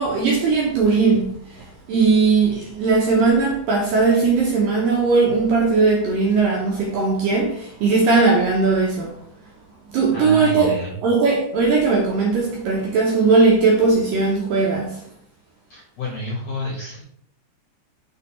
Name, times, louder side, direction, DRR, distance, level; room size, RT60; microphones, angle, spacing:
voice 1, 0.0-9.2 9.9-15.0, right 4 dB, 75° right, 2.1 m, -18 dB
voice 2, 10.1-10.9 15.7-17.0, left 1 dB, 70° left, 1.5 m, -29 dB
6.3 x 4.9 x 4.3 m
omnidirectional pair, 5.1 m